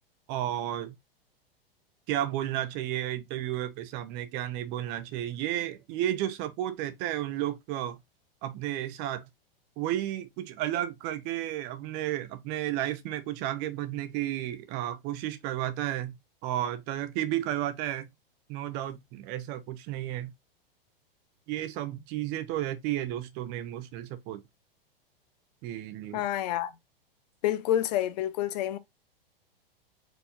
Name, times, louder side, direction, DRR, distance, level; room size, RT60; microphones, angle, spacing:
voice 1, 0.3-0.9 2.1-8.0 8.4-9.2 9.8-16.1 16.4-18.1 18.5-20.3 21.5-24.4 25.6-26.3, right 13 dB, 35° right, 0.8 m, -32 dB
voice 2, 26.1-26.7 27.4-28.8, left 12 dB, 45° left, 0.7 m, -28 dB
4.7 x 3.9 x 2.6 m
figure-of-eight pair, 95°, 29 cm